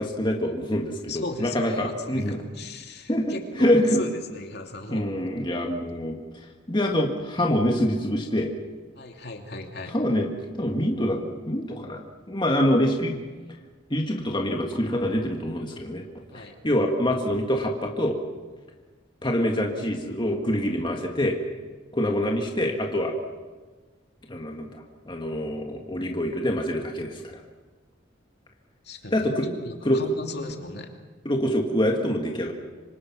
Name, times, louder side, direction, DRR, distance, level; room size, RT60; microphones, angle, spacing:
voice 1, 0.0-2.4 3.1-4.0 4.9-6.2 6.7-8.5 9.9-11.2 11.5-13.1 13.9-16.0 16.3-18.2 19.2-21.4 21.9-23.1 24.3-27.3 29.1-29.5 29.9-30.0 31.3-32.5, equal, 25° left, 1 dB, 1.9 m, -25 dB
voice 2, 1.1-5.2 9.0-9.9 16.3-16.5 28.8-30.9, left 2 dB, 55° left, 3 dB, 2.7 m, -37 dB
26.0 x 26.0 x 6.2 m, 1.4 s
head